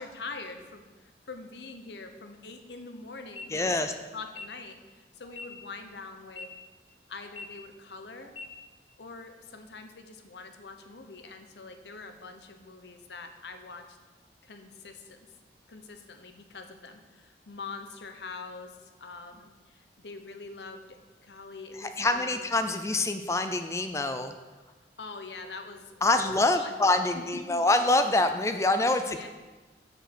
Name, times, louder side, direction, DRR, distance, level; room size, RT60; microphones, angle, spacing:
voice 1, 0.0-6.5 7.1-8.3 9.0-14.0 14.4-15.2 15.7-22.5 25.0-26.7 27.1-27.8 29.0-29.3, left 3 dB, 75° left, 6 dB, 0.9 m, -44 dB
sound 1, 3.2-3.4 4.2-4.4 5.2-5.4 6.2-6.4 7.2-7.4 8.2-8.4, left 4 dB, 35° left, 1.1 m, -42 dB
voice 2, 3.5-3.9 21.8-24.3 26.0-29.3, left 2 dB, 15° left, 8 dB, 0.4 m, -25 dB
7.2 x 6.7 x 6.1 m, 1.3 s
head